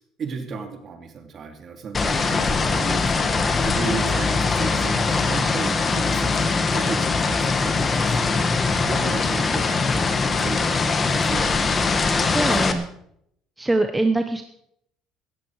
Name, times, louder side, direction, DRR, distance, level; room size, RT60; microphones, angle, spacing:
voice 1, 0.0-11.7 12.2-12.5, right 5 dB, 40° right, 5 dB, 2.9 m, -35 dB
sound 1, 1.9-12.7, left 4 dB, 25° left, 1.7 m, -22 dB
voice 2, 12.1-12.9 13.6-14.4, right 2 dB, 10° right, 6 dB, 1.1 m, -23 dB
17.5 x 13.5 x 4.9 m, 0.71 s
cardioid pair, 130°, 0 cm